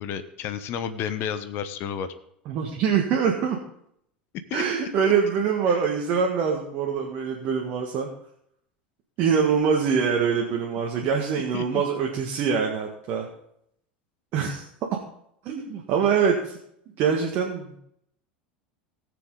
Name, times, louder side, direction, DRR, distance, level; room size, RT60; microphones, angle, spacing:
voice 1, 0.0-2.1 4.5-4.6 5.0-5.1 11.5-11.6, left 8 dB, 45° left, 11 dB, 1.1 m, -31 dB
voice 2, 2.4-3.6 4.5-8.1 9.2-13.3 14.3-14.6 15.4-16.6 17.0-17.8, right 6 dB, 45° right, 0 dB, 1.7 m, -24 dB
18.5 x 6.9 x 4.0 m, 0.73 s
figure-of-eight pair, 80°, 5 cm